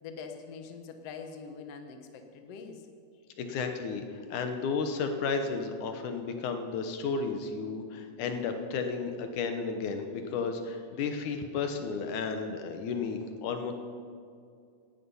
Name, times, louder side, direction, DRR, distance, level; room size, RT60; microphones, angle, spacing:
voice 1, 0.0-2.9, left 5 dB, 60° left, 5 dB, 2.0 m, -44 dB
voice 2, 3.4-13.7, left 5 dB, 75° left, 6 dB, 2.5 m, -33 dB
17.5 x 12.5 x 5.5 m, 2.3 s
omnidirectional pair, 3.6 m